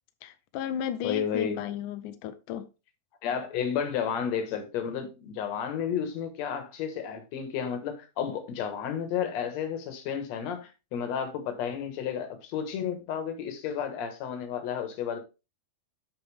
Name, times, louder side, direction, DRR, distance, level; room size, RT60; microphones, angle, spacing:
voice 1, 0.2-2.7, left 9 dB, 80° left, 1.9 m, -34 dB
voice 2, 1.0-1.6 3.2-15.2, left 8 dB, 60° left, 2.2 m, -32 dB
8.6 x 5.7 x 3.4 m
omnidirectional pair, 4.2 m